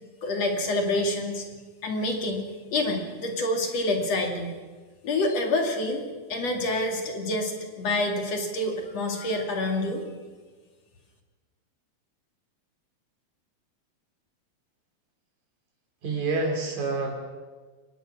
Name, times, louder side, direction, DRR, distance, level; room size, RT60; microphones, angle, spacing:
voice 1, 0.2-1.4 1.8-2.4 2.7-4.5 5.0-7.5 7.8-10.0, left 2 dB, 55° left, 3 dB, 3.5 m, -27 dB
voice 2, 16.0-17.1, right 3 dB, 70° right, 3 dB, 4.5 m, -27 dB
23.0 x 19.0 x 6.2 m, 1.4 s
omnidirectional pair, 3.5 m